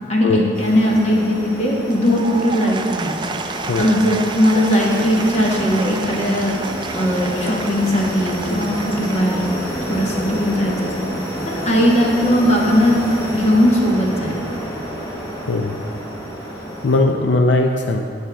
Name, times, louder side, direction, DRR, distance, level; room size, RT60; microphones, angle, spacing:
voice 1, 0.1-3.1 3.8-6.6 6.9-9.5 9.9-11.1 11.4-14.6, equal, 35° left, -2 dB, 1.3 m, -18 dB
sound 1, 0.5-17.0, equal, 20° left, 1.3 m, -29 dB
Applause / Crowd, 1.8-10.0, right 4 dB, 25° right, 0.4 m, -31 dB
voice 2, 16.8-18.0, left 2 dB, 75° left, 3 dB, 0.6 m, -18 dB
16.5 x 6.6 x 3.4 m, 2.3 s
head